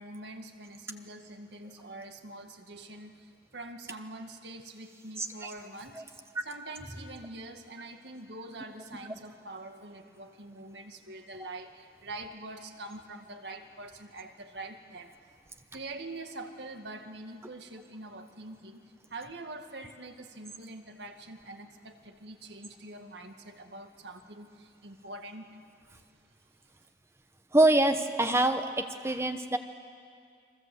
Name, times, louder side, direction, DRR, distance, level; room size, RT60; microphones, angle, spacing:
voice 1, 0.0-6.0 6.5-15.1 15.7-25.5, right 2 dB, 75° right, 5 dB, 2.0 m, -44 dB
voice 2, 5.2-5.5 5.9-6.0 6.4-6.5 9.1-9.2 11.4-11.5 27.5-29.6, right 2 dB, 15° right, 7 dB, 0.9 m, -25 dB
30.0 x 23.5 x 7.9 m, 2.2 s
head